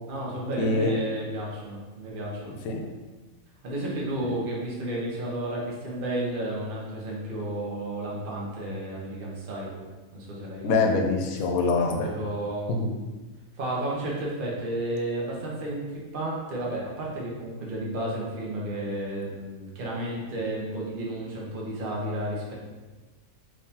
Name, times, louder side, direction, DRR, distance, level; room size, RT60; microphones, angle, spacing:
voice 1, 0.1-2.5 3.6-9.8 10.1-10.7 12.0-12.8 13.6-22.5, right 1 dB, 45° right, -4 dB, 0.9 m, -32 dB
voice 2, 0.6-1.0 2.5-2.9 10.6-12.1 12.7-12.9, left 3 dB, 90° left, 2 dB, 1.0 m, -25 dB
3.6 x 3.1 x 2.8 m, 1.2 s
omnidirectional pair, 1.4 m